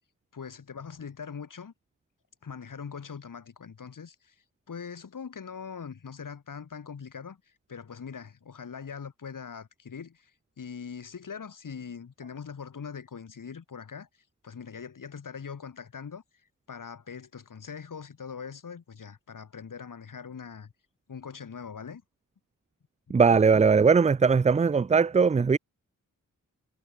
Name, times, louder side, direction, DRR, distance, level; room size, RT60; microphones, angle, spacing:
voice 1, 0.3-1.7 2.4-4.4 4.7-7.4 7.7-10.3 10.6-14.1 14.4-16.2 16.7-20.7 21.1-22.0, left 6 dB, 75° left, 7.1 m, -41 dB
voice 2, 23.1-25.6, right 5 dB, 20° right, 0.4 m, -20 dB
wide cardioid pair, 125°, 33 cm